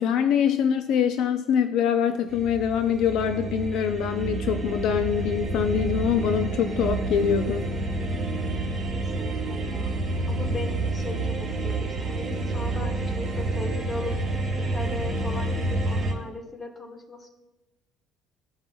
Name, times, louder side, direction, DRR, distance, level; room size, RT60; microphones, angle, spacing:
voice 1, 0.0-7.6, left 8 dB, 65° left, 8 dB, 0.5 m, -24 dB
sound 1, 2.3-16.1, right 2 dB, 15° right, 2.0 m, -29 dB
voice 2, 8.9-10.0 10.3-14.2 14.7-17.3, left 2 dB, 20° left, 3 dB, 1.2 m, -38 dB
15.5 x 5.4 x 2.3 m, 1.0 s
cardioid pair, 135°, 0 cm